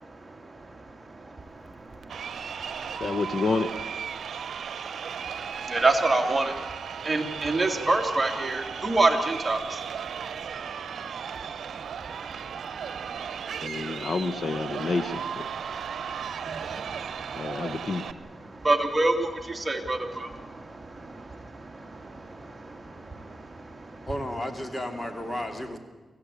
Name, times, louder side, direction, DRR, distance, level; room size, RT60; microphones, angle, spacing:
voice 1, 0.0-3.2 4.1-14.1 14.7-14.8 15.5-24.1, right 2 dB, 20° right, 3 dB, 2.7 m, -30 dB
Crowd, 2.0-18.1, right 7 dB, 80° right, 0.9 m, -36 dB
voice 2, 3.0-3.7 13.6-15.4 17.4-18.0, left 3 dB, 55° left, 11 dB, 1.3 m, -29 dB
voice 3, 24.1-25.8, left 1 dB, 25° left, 6 dB, 2.8 m, -33 dB
24.5 x 16.0 x 8.6 m, 1.2 s
cardioid pair, 90°, 0 cm